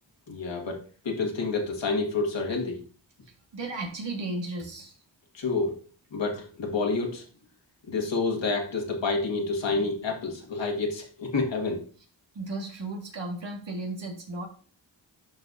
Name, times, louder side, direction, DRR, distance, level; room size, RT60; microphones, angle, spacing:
voice 1, 0.3-2.8 5.3-5.8 6.1-7.2 7.9-11.8, left 3 dB, 75° left, 1 dB, 2.0 m, -29 dB
voice 2, 3.5-4.9 12.3-14.5, right 2 dB, 75° right, 1 dB, 2.1 m, -34 dB
11.5 x 4.5 x 2.7 m, 0.39 s
wide cardioid pair, 70°, 44 cm